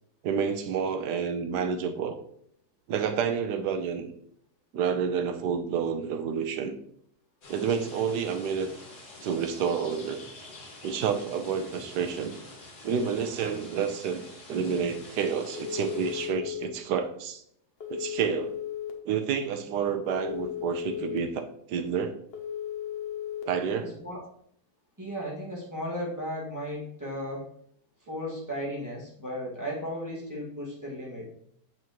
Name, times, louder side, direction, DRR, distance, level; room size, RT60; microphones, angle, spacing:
voice 1, 0.2-2.2 2.9-4.1 4.7-6.8 7.5-8.7 9.2-10.2 10.8-12.4 12.8-14.2 14.5-17.4 17.9-18.6 19.0-22.1 23.4-24.0, right 6 dB, 75° right, 7 dB, 1.3 m, -29 dB
sound 1, 7.4-16.3, left 2 dB, 70° left, 2.3 m, -47 dB
Telephone, 15.5-16.6 17.8-18.9 20.1-21.2 22.3-23.4, left 10 dB, 45° left, 0.9 m, -35 dB
voice 2, 23.8-24.2 25.0-27.5 28.1-31.3, equal, 10° right, -5 dB, 1.9 m, -35 dB
7.3 x 6.0 x 3.0 m, 0.67 s
omnidirectional pair, 1.8 m